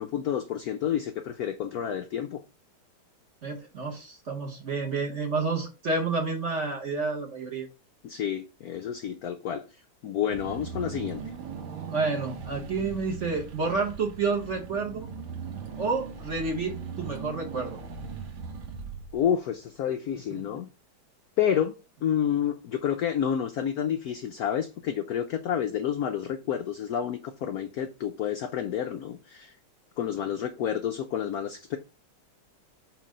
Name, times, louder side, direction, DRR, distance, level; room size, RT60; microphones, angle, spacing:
voice 1, 0.0-2.4 8.0-9.7 10.0-11.3 19.1-20.7 21.4-21.7 22.0-29.5 30.0-31.8, left 9 dB, 85° left, 0.8 m, -29 dB
voice 2, 3.4-7.7 11.9-15.1 15.8-17.8 20.3-20.6, right 4 dB, 45° right, 1.1 m, -30 dB
Car / Engine, 10.3-19.5, right 6 dB, 70° right, 1.7 m, -39 dB
4.7 x 4.0 x 5.2 m
omnidirectional pair, 2.2 m